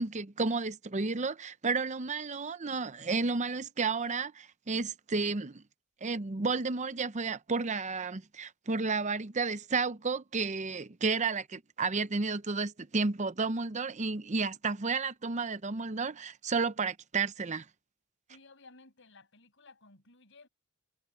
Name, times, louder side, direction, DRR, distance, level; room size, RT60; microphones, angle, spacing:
voice 1, 0.0-5.6 6.0-17.6, right 4 dB, 35° right, 0.7 m, -32 dB
voice 2, 18.3-20.5, left 3 dB, 60° left, 7.2 m, -57 dB
head